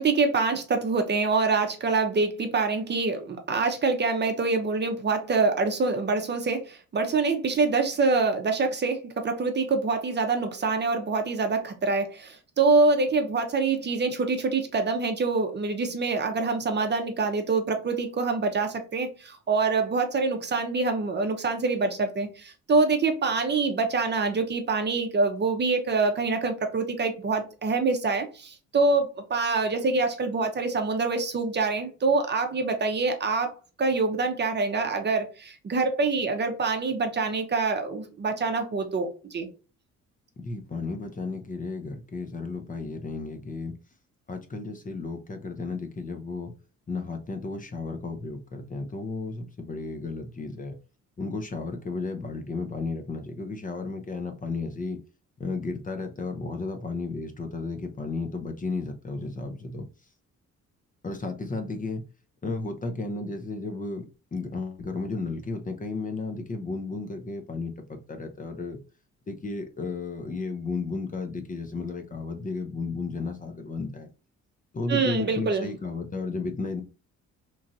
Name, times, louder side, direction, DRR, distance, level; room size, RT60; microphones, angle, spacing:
voice 1, 0.0-33.5 33.8-39.5 74.9-75.7, right 4 dB, 35° right, 0.7 m, -25 dB
voice 2, 40.4-43.7 44.3-46.5 46.9-50.8 51.2-55.0 55.4-59.8 61.0-62.0 62.4-64.0 64.3-68.8 69.3-74.1 74.7-76.8, left 3 dB, 25° left, 0.6 m, -33 dB
3.0 x 2.4 x 2.6 m
cardioid pair, 90°, 30 cm